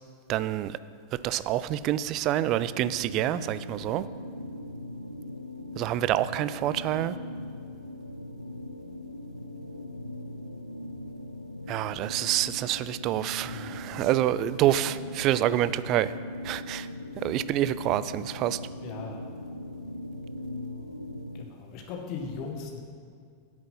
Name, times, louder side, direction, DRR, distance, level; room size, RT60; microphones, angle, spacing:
voice 1, 0.3-0.8 1.1-4.1 5.8-7.2 11.7-16.1 16.4-16.9 17.2-18.6, right 13 dB, 40° right, 16 dB, 0.3 m, -27 dB
sound 1, 2.4-21.4, left 1 dB, 90° left, 0.4 m, -40 dB
voice 2, 13.4-14.0 18.8-19.3 21.3-22.8, left 5 dB, 40° left, 3 dB, 1.5 m, -39 dB
9.7 x 7.6 x 5.5 m, 2.2 s
figure-of-eight pair, 90°, 0 cm